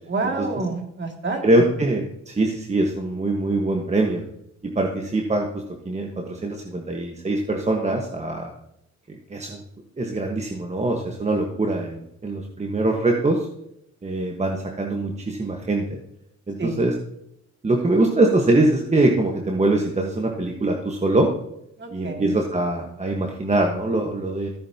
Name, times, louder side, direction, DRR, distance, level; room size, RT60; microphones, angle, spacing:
voice 1, 0.1-1.4 16.6-16.8 21.8-22.4, right 3 dB, 40° right, 3 dB, 2.4 m, -28 dB
voice 2, 1.4-4.2 4.6-8.5 9.3-9.6 10.0-13.5 14.0-16.0 16.5-16.9 17.6-21.3 21.9-24.5, right 2 dB, 20° right, 1 dB, 1.4 m, -23 dB
14.5 x 8.6 x 2.9 m, 0.77 s
cardioid pair, 90°, 30 cm